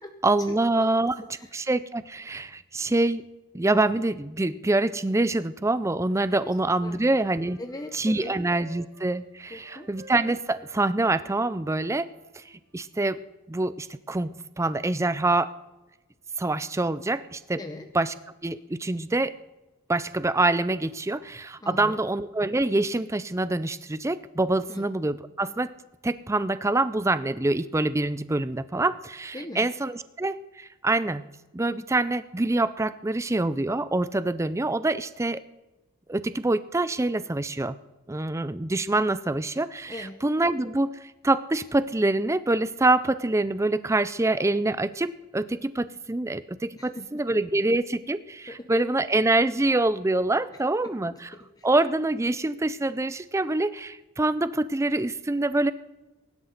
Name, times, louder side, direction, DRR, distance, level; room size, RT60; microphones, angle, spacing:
voice 1, 0.2-1.1 1.5-3.2 3.5-7.6 7.9-12.1 12.4-12.5 12.7-13.2 13.5-15.5 16.4-17.6 17.9-18.1 18.4-19.3 19.9-25.7 26.0-31.2 31.5-35.4 36.1-37.8 38.1-51.1 51.6-55.7, right 2 dB, 15° right, 15 dB, 0.4 m, -25 dB
voice 2, 1.2-1.6 6.4-6.5 6.8-7.0 7.6-8.4 9.5-9.9 17.5-17.9 21.6-22.0 24.7-24.8 29.3-29.7 39.9-40.2 46.8-47.1 48.5-48.9 50.8-51.7, left 1 dB, 15° left, 5 dB, 0.8 m, -40 dB
Wind instrument woodwind instrument, 6.0-9.1 9.5-13.0, right 3 dB, 65° right, 4.9 m, -53 dB
23.0 x 12.0 x 4.0 m, 1.1 s
head